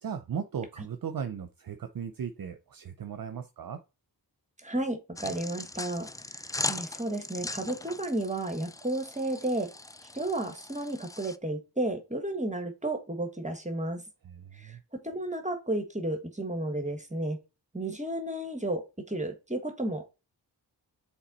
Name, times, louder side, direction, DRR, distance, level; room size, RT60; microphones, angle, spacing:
voice 1, 0.0-3.8 14.2-14.8, right 7 dB, 55° right, 0.7 m, -37 dB
voice 2, 4.6-9.7 10.1-14.0 14.5-17.4 17.7-20.2, right 1 dB, 15° right, 1.2 m, -33 dB
sound 1, 5.2-11.4, left 2 dB, 10° left, 0.3 m, -39 dB
7.2 x 3.5 x 4.0 m
cardioid pair, 65°, 42 cm